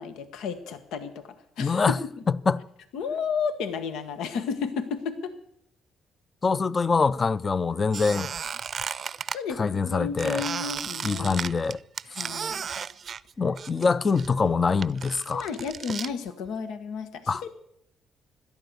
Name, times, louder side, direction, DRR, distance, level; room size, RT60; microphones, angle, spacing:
voice 1, 0.0-2.0 2.9-5.3 9.3-11.4 12.0-12.6 15.3-17.5, left 6 dB, 90° left, 1.2 m, -32 dB
voice 2, 1.6-2.0 2.5-2.6 6.4-8.3 9.6-10.4 11.0-11.8 13.4-15.5 17.3-17.4, left 4 dB, 35° left, 0.5 m, -24 dB
Squeak, 7.9-9.4 10.2-13.9 14.2-16.1, right 7 dB, 50° right, 0.5 m, -34 dB
17.0 x 12.5 x 6.7 m
cardioid pair, 90°, 0 cm